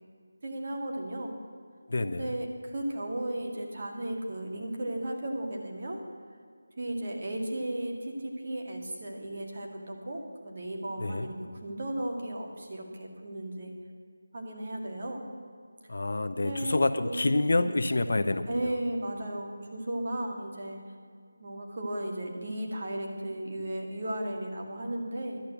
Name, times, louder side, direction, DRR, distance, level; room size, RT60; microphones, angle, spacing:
voice 1, 0.4-1.3 2.1-6.0 6.8-13.7 14.3-15.2 16.3-17.3 18.5-20.8 21.4-25.4, right 1 dB, 40° right, 1 dB, 2.0 m, -35 dB
voice 2, 1.9-2.3 11.0-11.3 15.9-18.7, left 2 dB, 60° left, 10 dB, 0.7 m, -27 dB
11.5 x 8.3 x 8.0 m, 2.1 s
figure-of-eight pair, 175°, 0 cm